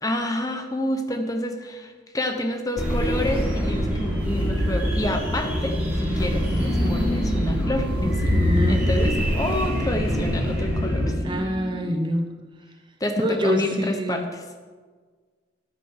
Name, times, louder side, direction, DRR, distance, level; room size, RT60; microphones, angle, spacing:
voice 1, 0.0-12.1 13.0-14.4, left 1 dB, 20° left, 5 dB, 1.1 m, -29 dB
sound 1, 2.8-11.1, equal, 10° right, 3.4 m, -24 dB
voice 2, 6.8-7.2 8.3-9.1 11.2-12.3 13.2-14.3, equal, 25° right, 5 dB, 0.8 m, -26 dB
13.0 x 9.4 x 6.6 m, 1.5 s
head